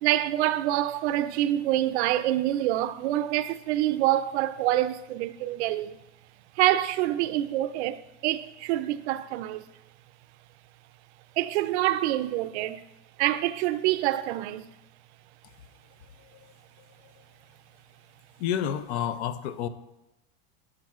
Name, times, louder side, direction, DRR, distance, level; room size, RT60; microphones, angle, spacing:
voice 1, 0.0-6.0 6.6-9.7 11.4-12.8 13.2-14.7, right 14 dB, 90° right, 0.5 m, -26 dB
voice 2, 18.4-19.7, left 9 dB, 80° left, 0.6 m, -29 dB
10.5 x 6.3 x 2.4 m
supercardioid pair, 145°, 33 cm